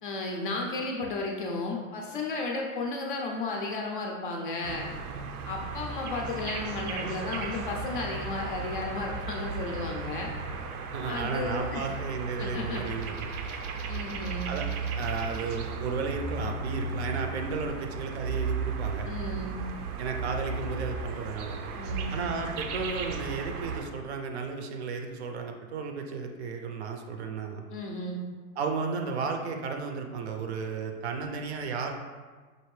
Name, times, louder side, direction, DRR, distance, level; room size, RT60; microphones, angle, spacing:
voice 1, 0.0-4.9 5.5-10.3 11.1-12.0 12.4-12.8 13.5-13.6 13.9-14.5 19.1-19.6 21.8-22.2 27.7-28.2, left 2 dB, 40° left, 0 dB, 0.4 m, -34 dB
sound 1, 4.6-23.8, right 4 dB, 85° right, 0.7 m, -35 dB
voice 2, 10.9-13.2 14.2-14.7 15.0-19.1 20.0-21.6 22.1-27.6 28.6-31.9, right 5 dB, 50° right, 4 dB, 0.5 m, -34 dB
5.7 x 2.6 x 3.1 m, 1.4 s
supercardioid pair, 165°, 44 cm